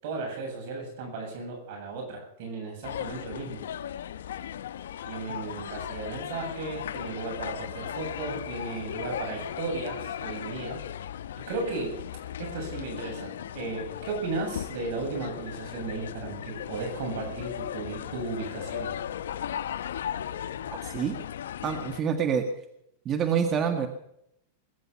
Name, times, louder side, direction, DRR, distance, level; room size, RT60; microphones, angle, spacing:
voice 1, 0.0-3.6 5.0-10.8 11.5-12.0 12.4-18.9, right 3 dB, 60° right, 2 dB, 7.7 m, -35 dB
sound 1, 2.8-22.0, left 10 dB, 85° left, 0.9 m, -37 dB
voice 2, 20.8-21.2 21.6-22.5 23.1-23.9, right 7 dB, 30° right, 6 dB, 1.7 m, -26 dB
22.0 x 10.5 x 5.7 m, 0.75 s
supercardioid pair, 140°, 0 cm